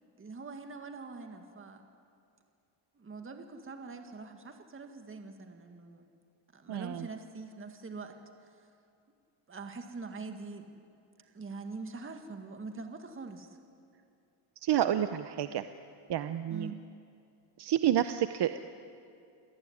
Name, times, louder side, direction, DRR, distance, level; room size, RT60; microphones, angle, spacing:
voice 1, 0.2-1.8 2.9-6.1 6.5-8.2 8.4-8.7 9.5-10.7 11.3-13.5 16.5-16.8, right 3 dB, 25° right, 5 dB, 1.9 m, -44 dB
voice 2, 6.7-7.0 14.6-15.6 16.1-16.7 17.6-18.6, right 11 dB, 55° right, 10 dB, 0.9 m, -29 dB
27.5 x 19.0 x 9.9 m, 2.5 s
cardioid pair, 145°, 49 cm